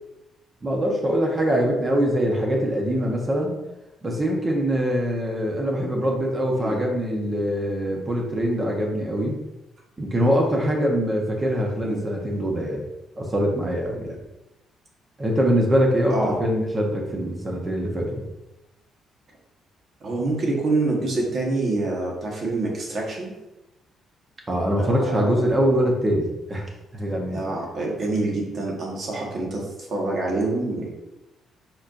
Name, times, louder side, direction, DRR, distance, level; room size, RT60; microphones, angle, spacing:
voice 1, 0.6-3.5 4.0-9.4 10.0-12.8 13.2-14.2 15.2-18.3 24.5-26.6 26.9-27.4, equal, 30° right, 0 dB, 1.0 m, -23 dB
voice 2, 20.0-23.3 24.8-25.4 27.3-30.9, right 2 dB, 50° right, -1 dB, 1.4 m, -26 dB
4.5 x 4.2 x 2.6 m, 0.96 s
cardioid pair, 90°, 0 cm